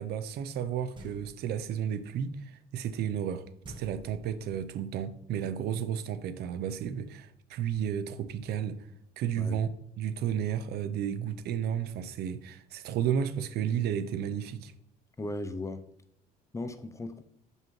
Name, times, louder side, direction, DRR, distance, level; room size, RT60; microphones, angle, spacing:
voice 1, 0.0-8.8 9.2-9.7 10.0-14.7, right 8 dB, 70° right, 0.6 m, -32 dB
sound 1, 0.9-1.6 3.6-4.7, right 1 dB, 25° right, 1.5 m, -48 dB
voice 2, 15.2-15.8 16.5-17.2, left 2 dB, 15° left, 0.5 m, -37 dB
7.0 x 5.4 x 3.1 m
cardioid pair, 110°, 17 cm